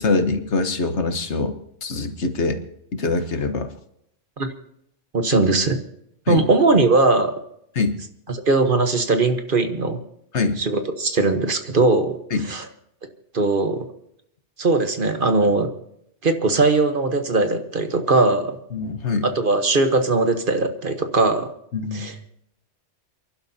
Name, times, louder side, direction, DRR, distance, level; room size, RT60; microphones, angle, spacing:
voice 1, 0.0-2.6 2.9-3.7 6.3-6.4 7.7-7.9 10.3-10.6 12.3-12.5 18.7-19.2 21.7-22.1, left 3 dB, 65° left, 8 dB, 1.5 m, -23 dB
voice 2, 5.1-5.8 6.3-7.4 8.3-10.0 10.6-12.2 12.5-12.7 13.3-13.9 14.6-15.7 16.2-18.6 19.3-21.5 21.9-22.1, right 3 dB, 45° right, 7 dB, 1.3 m, -20 dB
29.0 x 11.5 x 2.8 m, 0.75 s
omnidirectional pair, 1.2 m